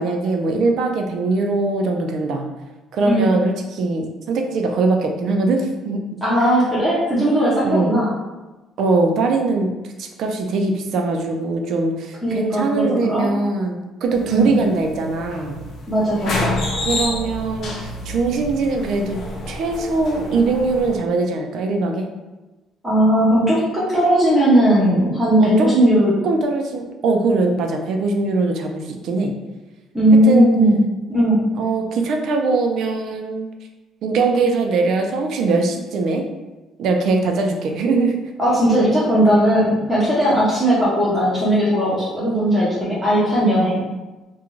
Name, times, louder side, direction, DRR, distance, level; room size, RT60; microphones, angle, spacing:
voice 1, 0.0-2.4 2.9-6.0 7.6-8.0 8.8-15.6 16.8-19.2 19.5-22.1 25.4-25.7 26.2-29.3 30.3-30.5 31.6-33.5 34.0-36.2 36.8-38.2, right 3 dB, 60° right, 3 dB, 0.4 m, -21 dB
voice 2, 6.2-8.1 12.2-13.3 14.2-14.5 15.9-16.6 22.8-26.1 29.9-30.8 31.1-31.4 38.4-43.8, right 1 dB, 5° right, -9 dB, 0.6 m, -17 dB
sound 1, 14.1-21.0, left 2 dB, 50° left, 0.6 m, -29 dB
2.4 x 2.2 x 3.0 m, 1.1 s
cardioid pair, 160°, 0 cm